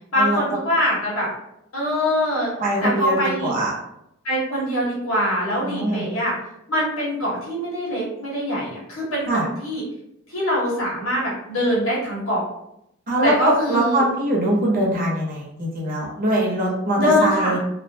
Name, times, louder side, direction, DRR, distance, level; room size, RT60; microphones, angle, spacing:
voice 1, 0.1-1.3 1.7-2.5 2.8-3.5 4.2-6.3 6.7-9.8 10.3-12.4 13.2-14.0 16.9-17.6, equal, 75° left, -5 dB, 1.2 m, -23 dB
voice 2, 2.6-3.7 5.6-6.0 9.3-9.4 13.1-17.6, right 1 dB, 40° right, -3 dB, 0.7 m, -22 dB
2.4 x 2.1 x 2.6 m, 0.79 s
head